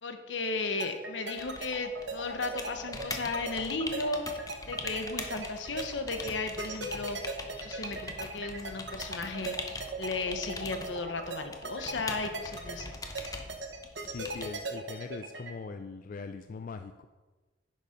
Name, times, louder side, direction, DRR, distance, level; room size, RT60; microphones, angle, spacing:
voice 1, 0.0-4.2 4.7-7.2 7.6-9.6 10.0-12.9, left 3 dB, 75° left, 7 dB, 1.1 m, -35 dB
sound 1, 0.8-15.5, right 3 dB, 70° right, 1.3 m, -38 dB
sound 2, 1.4-14.5, left 3 dB, 20° left, 0.9 m, -42 dB
voice 2, 14.0-17.1, left 4 dB, 45° left, 8 dB, 0.4 m, -41 dB
10.0 x 6.7 x 5.2 m, 1.3 s
head